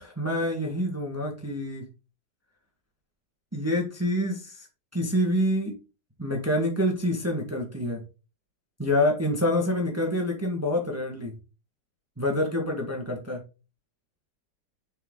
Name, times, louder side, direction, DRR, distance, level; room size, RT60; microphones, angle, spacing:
voice 1, 0.0-1.9 3.5-4.7 4.9-5.7 6.2-8.0 8.8-11.4 12.2-13.4, left 1 dB, 10° right, 0 dB, 1.1 m, -27 dB
6.7 x 4.6 x 3.7 m, 0.32 s
omnidirectional pair, 1.9 m